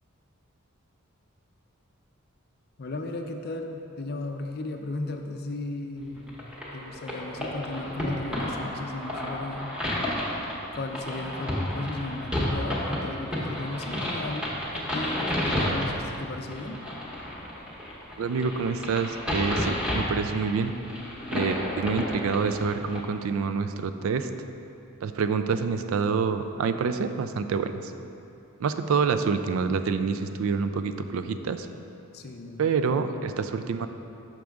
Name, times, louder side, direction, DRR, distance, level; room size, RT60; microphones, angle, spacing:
voice 1, 2.8-6.4 6.7-9.7 10.7-14.5 14.9-16.8 32.1-32.9, left 2 dB, 45° left, 4 dB, 0.5 m, -35 dB
sound 1, 6.3-23.0, left 1 dB, 5° right, 0.9 m, -31 dB
voice 2, 18.2-20.7 21.3-24.3 25.0-27.9 28.6-31.7 32.6-33.9, right 5 dB, 75° right, 10 dB, 0.3 m, -27 dB
6.3 x 6.0 x 3.5 m, 2.8 s
head